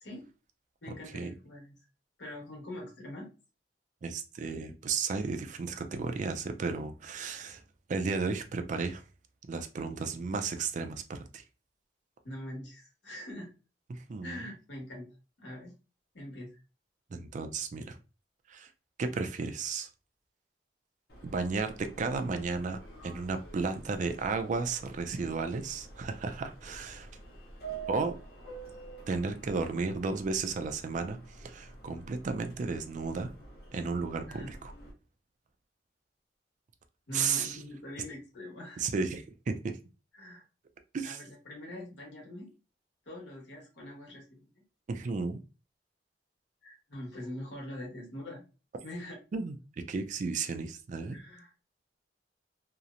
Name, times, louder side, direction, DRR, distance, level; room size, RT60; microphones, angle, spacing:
voice 1, 0.8-1.8 2.2-3.3 12.2-13.5 14.2-15.1 15.4-15.7 16.1-16.6 34.3-34.5 37.1-38.8 40.1-40.4 41.0-42.5 43.1-44.5 46.6-48.4 48.8-49.1 51.1-51.5, left 1 dB, 85° left, 1.2 m, -43 dB
voice 2, 4.0-7.6 7.9-9.0 9.5-11.4 13.9-14.4 17.1-18.0 18.5-18.7 19.0-19.9 21.2-27.1 27.9-28.1 29.1-33.3 33.7-34.6 37.1-37.6 38.8-39.8 40.9-41.2 44.9-45.4 49.3-49.6 49.9-51.2, right 4 dB, 45° right, 0.3 m, -33 dB
Subway metro underground, 21.1-34.9, right 4 dB, 60° left, 0.7 m, -48 dB
2.8 x 2.0 x 2.4 m
head